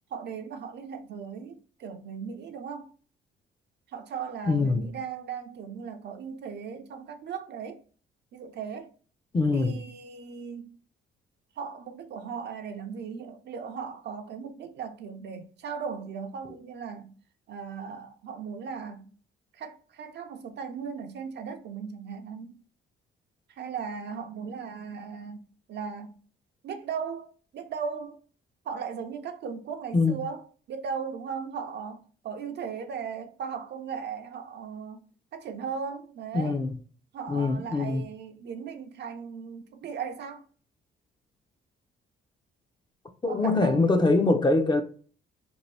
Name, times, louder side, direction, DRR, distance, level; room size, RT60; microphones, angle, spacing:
voice 1, 0.1-2.9 3.9-7.8 8.3-8.9 9.5-10.8 11.6-17.1 17.5-19.1 19.5-22.6 23.5-26.2 26.6-28.2 28.7-35.0 35.3-36.6 37.1-40.4 43.3-44.1, right 6 dB, 60° right, 0.5 m, -37 dB
voice 2, 4.5-4.9 9.3-9.8 29.9-30.2 36.3-36.8 37.3-38.0 43.2-44.8, left 3 dB, 20° left, 0.5 m, -23 dB
2.6 x 2.6 x 3.2 m
cardioid pair, 90°, 20 cm